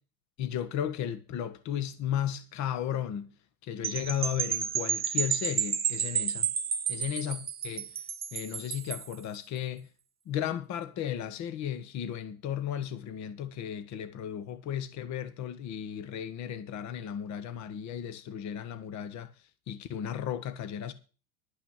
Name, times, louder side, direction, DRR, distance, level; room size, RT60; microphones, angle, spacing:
voice 1, 0.4-3.3 3.6-6.5 6.9-7.9 8.3-9.9 10.3-19.3 19.7-20.9, left 10 dB, 40° left, 1.3 m, -35 dB
sound 1, 3.8-9.1, right 8 dB, 20° right, 1.0 m, -31 dB
12.0 x 5.9 x 8.7 m
hypercardioid pair, 95°, 43 cm